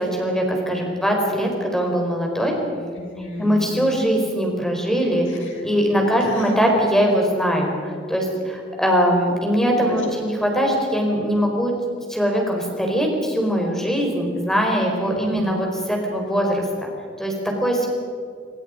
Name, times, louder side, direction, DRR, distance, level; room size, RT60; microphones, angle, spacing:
voice 1, 0.0-2.5 3.4-5.3 5.6-11.7 12.1-16.9 17.2-17.9, equal, ahead, 1 dB, 4.8 m, -21 dB
voice 2, 2.9-3.8 5.3-5.6 6.1-6.5 9.9-10.2 14.9-15.5, left 1 dB, 80° left, 1 dB, 6.3 m, -35 dB
26.5 x 25.5 x 5.2 m, 2.3 s
head